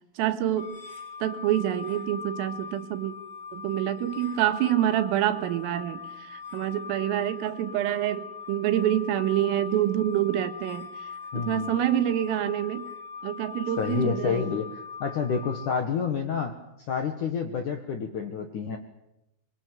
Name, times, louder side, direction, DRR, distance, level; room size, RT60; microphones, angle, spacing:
voice 1, 0.2-0.8 1.2-3.1 3.5-11.1 11.3-12.9 13.2-14.5, right 12 dB, 80° right, 9 dB, 4.1 m, -27 dB
sound 1, 0.6-15.7, left 5 dB, 35° left, 6.1 m, -41 dB
voice 2, 11.3-11.7 13.8-16.6 16.9-18.8, left 6 dB, 70° left, 6 dB, 1.9 m, -29 dB
25.0 x 23.5 x 9.1 m, 0.86 s
omnidirectional pair, 5.9 m